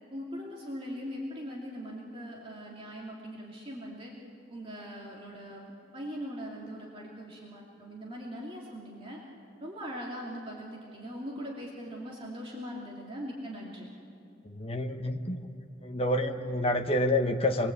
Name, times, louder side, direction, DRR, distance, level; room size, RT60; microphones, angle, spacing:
voice 1, 0.1-4.1 4.5-9.2 9.6-13.9, equal, 30° right, -4 dB, 2.8 m, -41 dB
voice 2, 14.4-15.4 15.8-17.7, left 1 dB, 30° left, 5 dB, 1.2 m, -28 dB
27.0 x 21.5 x 8.3 m, 2.6 s
head